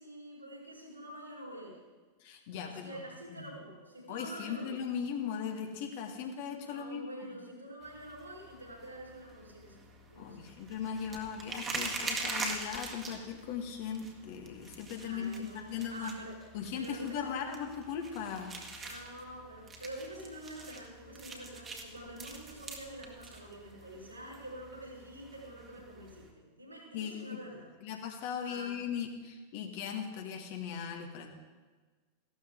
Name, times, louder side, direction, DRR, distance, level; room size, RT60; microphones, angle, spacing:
voice 1, 0.0-1.8 2.6-4.8 6.6-10.6 15.0-16.4 16.7-17.4 18.8-27.7 28.4-28.7, right 1 dB, 85° right, -4 dB, 4.9 m, -47 dB
voice 2, 2.2-3.0 3.3-3.5 4.1-7.1 10.2-16.1 16.5-18.5 26.9-27.4 27.8-31.3, left 7 dB, 50° left, 3 dB, 1.8 m, -38 dB
sound 1, 7.8-26.3, right 3 dB, 20° right, 1.9 m, -44 dB
15.5 x 12.5 x 3.8 m, 1.4 s
figure-of-eight pair, 90°, 0 cm